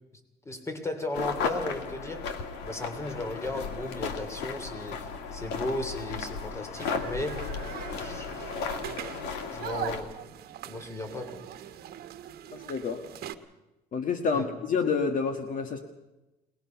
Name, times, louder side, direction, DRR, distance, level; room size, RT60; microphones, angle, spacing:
voice 1, 0.4-2.3 2.6-7.5 7.8-8.7 9.5-10.1 10.6-11.4 14.3-14.5, left 1 dB, 15° left, 7 dB, 3.0 m, -35 dB
sound 1, 1.1-10.0, left 5 dB, 90° left, 2.1 m, -35 dB
sound 2, 6.8-13.4, right 11 dB, 65° right, 1.2 m, -42 dB
voice 2, 12.5-13.0 13.9-15.8, left 5 dB, 50° left, 7 dB, 1.6 m, -28 dB
22.5 x 19.5 x 5.9 m, 1.0 s
cardioid pair, 110°, 17 cm